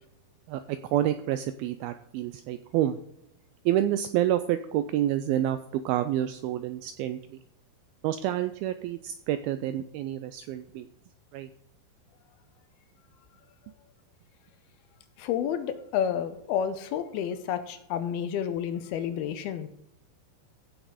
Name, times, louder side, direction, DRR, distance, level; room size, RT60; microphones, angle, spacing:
voice 1, 0.5-3.0 3.7-7.4 8.0-10.9 11.3-11.5, right 12 dB, 90° right, 11 dB, 2.1 m, -28 dB
voice 2, 15.2-19.7, left 9 dB, 80° left, 10 dB, 2.5 m, -30 dB
15.5 x 6.3 x 4.9 m, 0.73 s
omnidirectional pair, 4.8 m